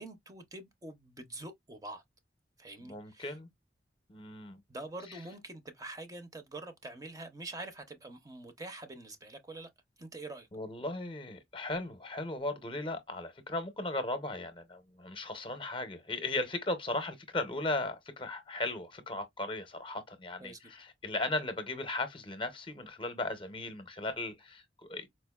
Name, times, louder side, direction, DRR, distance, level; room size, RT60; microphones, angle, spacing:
voice 1, 0.0-2.0 2.6-3.3 4.7-9.7 10.0-10.5 20.4-20.7, right 2 dB, 20° right, 0.6 m, -45 dB
voice 2, 2.8-3.5 4.1-4.6 5.1-5.2 10.5-25.1, left 2 dB, 30° left, 0.7 m, -37 dB
4.3 x 2.4 x 2.3 m
head